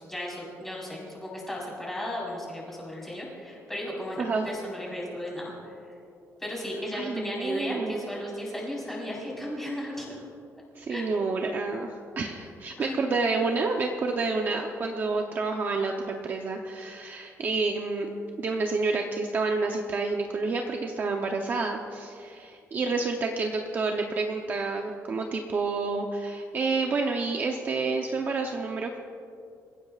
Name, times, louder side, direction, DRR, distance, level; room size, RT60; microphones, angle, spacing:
voice 1, 0.0-5.7 6.4-10.2 10.9-11.1 12.8-13.0 13.6-13.7, equal, 5° left, -5 dB, 4.5 m, -35 dB
voice 2, 4.2-4.5 6.9-8.0 10.8-18.1 18.4-29.0, right 3 dB, 35° right, 2 dB, 0.8 m, -29 dB
27.5 x 15.5 x 2.5 m, 2.5 s
cardioid pair, 180°, 6 cm